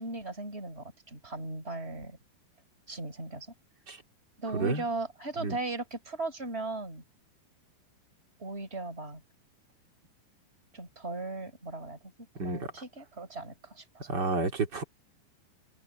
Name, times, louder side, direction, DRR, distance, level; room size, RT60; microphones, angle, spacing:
voice 1, 0.0-2.2 2.9-3.5 4.4-7.0 8.4-9.2 10.7-12.0 12.4-14.1, right 2 dB, 15° right, 6.2 m, -37 dB
voice 2, 4.5-4.8 5.4-5.6 12.4-12.7 14.1-14.8, right 3 dB, 30° right, 2.4 m, -30 dB
omnidirectional pair, 5.2 m